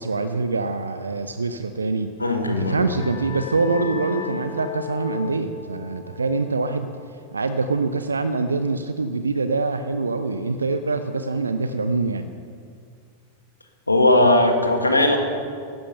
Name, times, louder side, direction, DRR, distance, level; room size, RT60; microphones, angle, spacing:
voice 1, 0.0-2.1 2.5-6.9 7.3-12.3, right 3 dB, 75° right, 10 dB, 0.6 m, -24 dB
voice 2, 2.2-2.8 13.9-15.2, left 1 dB, 80° left, 5 dB, 1.6 m, -18 dB
sound 1, 2.3-7.6, left 6 dB, 55° left, 1.8 m, -37 dB
14.5 x 11.5 x 5.5 m, 2.2 s
figure-of-eight pair, 90°, 0 cm